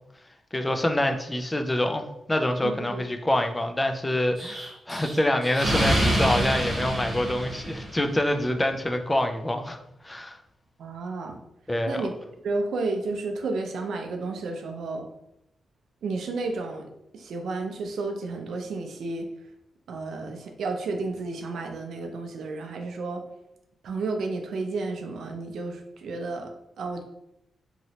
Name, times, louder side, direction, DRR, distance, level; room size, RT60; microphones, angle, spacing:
voice 1, 0.5-9.8 10.0-10.4 11.7-12.1, left 1 dB, 15° left, 5 dB, 0.3 m, -26 dB
voice 2, 2.6-3.0 10.8-11.4 11.9-12.2 12.4-15.1 16.0-16.9 17.1-19.3 19.9-23.3 23.8-26.5 26.8-27.0, right 3 dB, 80° right, 4 dB, 0.4 m, -32 dB
Explosion, 4.4-8.2, right 1 dB, 35° right, 0.9 m, -27 dB
3.0 x 2.8 x 2.7 m, 0.85 s
cardioid pair, 110°, 0 cm